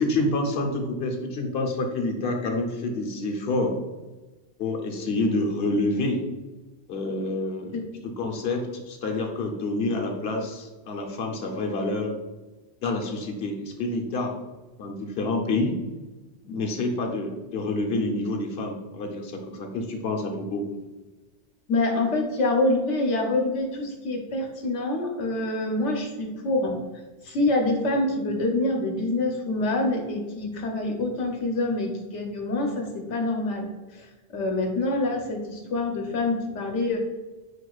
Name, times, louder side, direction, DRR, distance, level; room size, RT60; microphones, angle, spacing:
voice 1, 0.0-3.7 4.6-6.2 6.9-7.8 8.0-12.1 12.8-14.3 14.8-15.8 16.4-20.6, left 2 dB, 65° left, 2 dB, 0.9 m, -28 dB
voice 2, 21.7-26.8 27.2-33.7 33.9-37.0, left 2 dB, 90° left, 2 dB, 1.1 m, -26 dB
4.9 x 4.7 x 2.3 m, 1.2 s
omnidirectional pair, 1.2 m